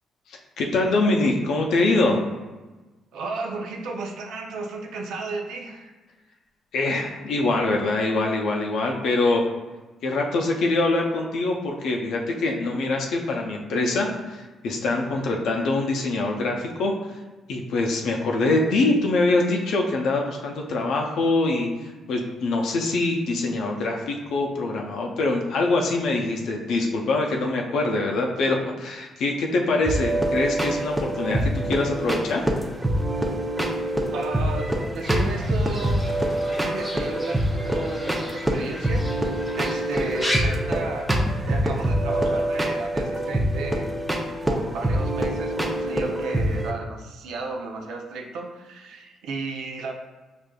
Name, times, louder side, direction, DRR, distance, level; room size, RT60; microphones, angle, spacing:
voice 1, 0.3-2.2 6.7-9.5 10.0-17.2 17.5-32.5, left 2 dB, 75° left, 0 dB, 0.4 m, -24 dB
voice 2, 3.1-5.9 34.1-36.1 36.5-43.9 44.5-49.9, right 3 dB, 85° right, 2 dB, 0.5 m, -34 dB
sound 1, 29.9-46.7, right 1 dB, 10° right, 0.5 m, -25 dB
Fowl / Bird, 35.0-40.4, left 1 dB, 20° left, 0.9 m, -35 dB
4.9 x 2.5 x 2.3 m, 1.2 s
cardioid pair, 90°, 0 cm